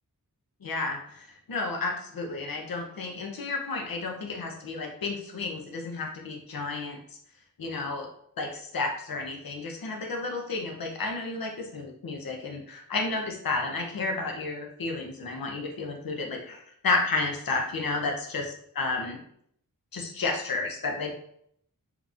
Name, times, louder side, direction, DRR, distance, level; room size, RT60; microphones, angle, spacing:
voice 1, 0.6-7.0 7.6-8.1 8.4-19.2 19.9-21.1, left 3 dB, 75° left, 2 dB, 0.7 m, -32 dB
3.8 x 2.9 x 2.4 m, 0.67 s
wide cardioid pair, 85°, 35 cm